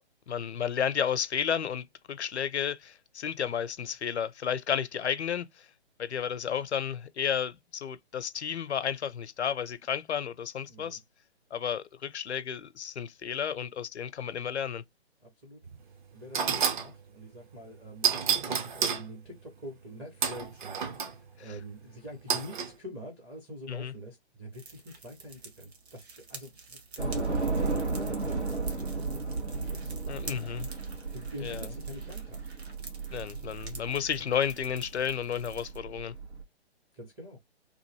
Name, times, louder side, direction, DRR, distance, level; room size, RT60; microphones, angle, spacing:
voice 1, 0.3-5.7 6.0-11.0 11.5-14.8 21.4-21.6 23.7-23.9 30.1-30.7 31.4-31.7 33.1-36.1, left 8 dB, 80° left, 0.6 m, -32 dB
voice 2, 10.7-11.0 15.2-15.6 16.1-30.5 31.1-32.4 36.9-37.4, equal, 10° right, 0.5 m, -45 dB
sound 1, 15.6-15.8 16.3-16.9 18.0-19.0 20.2-21.1 22.3-22.7, right 7 dB, 45° right, 0.8 m, -29 dB
sound 2, 24.5-35.8, right 4 dB, 70° right, 1.4 m, -49 dB
Train / Subway metro underground, 27.0-36.4, right 4 dB, 85° right, 1.6 m, -34 dB
3.0 x 2.6 x 2.8 m
figure-of-eight pair, 135°, 33 cm